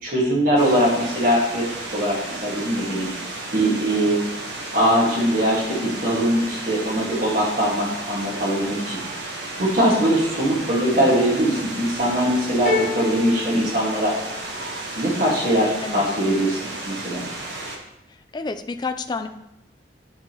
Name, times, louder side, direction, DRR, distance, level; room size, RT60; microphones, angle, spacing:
voice 1, 0.0-1.6 1.9-3.1 3.5-4.2 4.7-9.0 9.6-14.1 15.0-16.6 16.9-17.3, equal, 55° right, -5 dB, 1.7 m, -21 dB
sound 1, 0.6-17.8, right 2 dB, 75° right, 1.1 m, -33 dB
sound 2, 12.7-14.7, left 3 dB, 50° left, 1.3 m, -28 dB
voice 2, 18.3-19.3, left 3 dB, 25° left, 8 dB, 0.3 m, -29 dB
10.5 x 3.6 x 2.9 m, 0.88 s
head